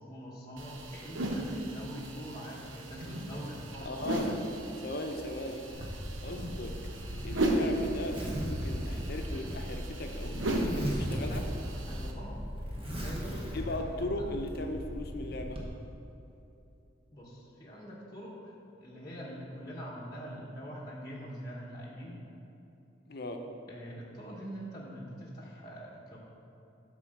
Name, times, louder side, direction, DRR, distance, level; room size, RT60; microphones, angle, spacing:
voice 1, 0.1-4.4 11.9-14.3 17.1-22.2 23.7-26.2, equal, 20° left, -7 dB, 0.9 m, -44 dB
sound 1, 0.6-12.1, right 1 dB, 85° right, 0.9 m, -36 dB
voice 2, 3.8-4.3 4.8-5.6 6.2-6.7 7.2-11.5 13.5-15.6 23.1-23.4, left 1 dB, 50° left, 4 dB, 0.7 m, -38 dB
Zipper (clothing), 5.7-15.6, equal, 30° right, 1.2 m, -37 dB
9.2 x 3.9 x 6.5 m, 2.8 s
head